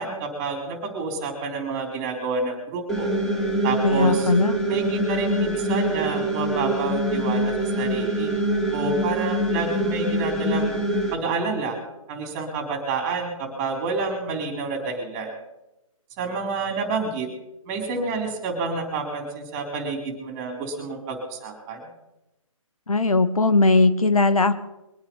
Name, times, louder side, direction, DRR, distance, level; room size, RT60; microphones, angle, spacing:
voice 1, 0.0-3.1 3.6-4.3 4.7-8.3 8.7-10.7 11.1-11.8 12.1-15.4 16.2-17.3 17.7-21.8, right 4 dB, 25° right, 4 dB, 4.0 m, -29 dB
sound 1, 2.9-11.1, right 1 dB, 5° left, 2.2 m, -24 dB
voice 2, 3.8-4.5 22.9-24.5, left 3 dB, 85° left, 11 dB, 1.4 m, -19 dB
23.0 x 8.9 x 5.6 m, 0.97 s
figure-of-eight pair, 145°, 18 cm